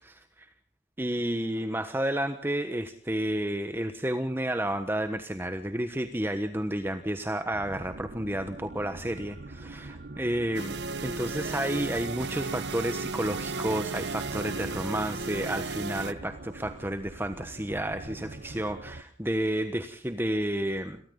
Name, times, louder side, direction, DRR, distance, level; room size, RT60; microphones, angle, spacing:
voice 1, 1.0-10.7 11.0-21.0, right 1 dB, 15° right, 9 dB, 1.3 m, -31 dB
sound 1, 7.5-19.0, right 2 dB, 65° right, 1.1 m, -44 dB
sound 2, 10.5-16.1, right 3 dB, 90° right, 1.0 m, -34 dB
29.5 x 23.0 x 3.9 m, 0.44 s
head